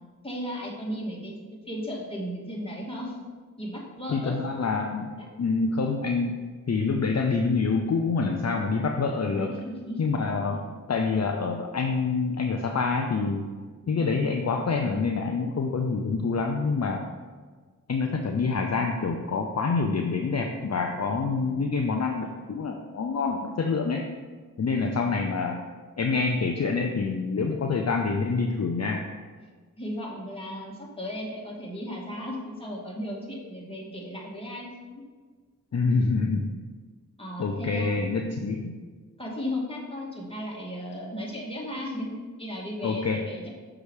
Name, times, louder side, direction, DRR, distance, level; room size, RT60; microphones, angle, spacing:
voice 1, 0.2-1.3 1.7-3.2 3.6-4.4 9.4-10.0 10.5-10.6 24.7-24.9 27.6-27.9 29.8-35.0 37.2-37.9 39.2-43.5, equal, 15° left, -3 dB, 2.2 m, -35 dB
voice 2, 4.1-5.1 5.4-6.3 6.7-9.5 10.0-10.6 10.9-13.4 13.9-17.0 17.9-24.0 24.6-25.6 26.0-29.0 35.7-36.5 37.4-38.7 42.8-43.2, left 4 dB, 50° left, 3 dB, 0.6 m, -26 dB
6.5 x 5.0 x 4.8 m, 1.5 s
cardioid pair, 50°, 34 cm